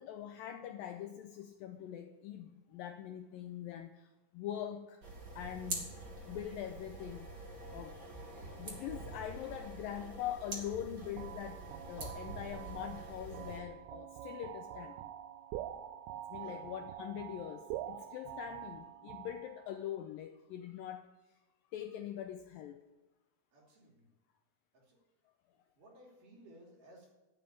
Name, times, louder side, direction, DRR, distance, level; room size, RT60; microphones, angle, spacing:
voice 1, 0.0-5.0 5.4-6.0 6.3-7.3 7.7-8.0 8.6-15.1 16.3-21.1 21.7-22.8, left 10 dB, 85° left, 7 dB, 2.0 m, -43 dB
sound 1, 5.0-13.6, right 2 dB, 30° right, 2.3 m, -46 dB
sound 2, 11.2-19.9, right 11 dB, 80° right, 2.5 m, -46 dB
voice 2, 23.5-24.1 24.7-25.0 25.7-27.1, right 1 dB, 55° right, -1 dB, 4.1 m, -58 dB
12.5 x 8.4 x 8.6 m, 1.1 s
omnidirectional pair, 4.7 m